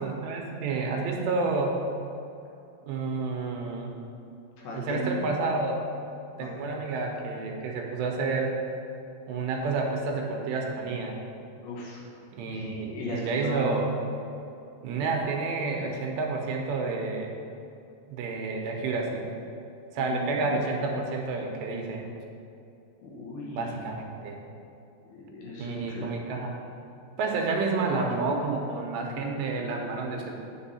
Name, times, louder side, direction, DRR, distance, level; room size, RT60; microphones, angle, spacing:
voice 1, 0.0-1.8 2.9-3.9 4.7-5.8 6.4-8.5 9.3-11.2 12.3-13.9 14.8-17.3 18.1-19.2 19.9-22.0 23.5-24.4 25.6-26.6 27.2-30.3, right 3 dB, 85° right, 1 dB, 3.0 m, -29 dB
voice 2, 4.6-5.1 6.4-6.7 11.6-12.1 12.4-13.8 20.0-20.7 23.0-23.9 25.1-26.1, left 2 dB, 70° left, -3 dB, 2.8 m, -37 dB
8.0 x 7.0 x 4.2 m, 2.7 s
omnidirectional pair, 5.0 m